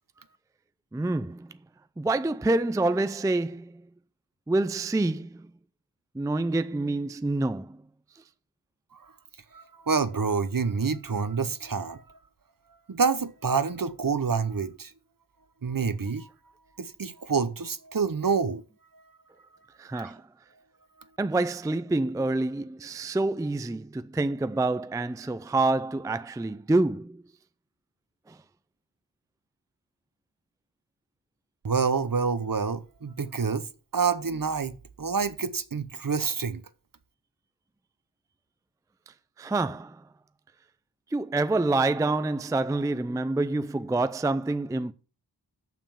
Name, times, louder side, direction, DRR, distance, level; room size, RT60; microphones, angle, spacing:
voice 1, 0.9-1.5 2.0-3.8 4.5-5.5 6.1-7.8 19.8-20.2 21.2-27.2 28.3-28.4 39.4-40.0 41.1-44.9, right 2 dB, 10° right, 0.4 m, -27 dB
voice 2, 9.5-12.0 12.9-14.9 15.6-16.3 16.8-18.6 19.9-20.1 31.6-33.7 33.9-34.7 35.0-36.6, right 5 dB, 50° right, 0.8 m, -27 dB
6.9 x 5.9 x 7.0 m
wide cardioid pair, 55°, 42 cm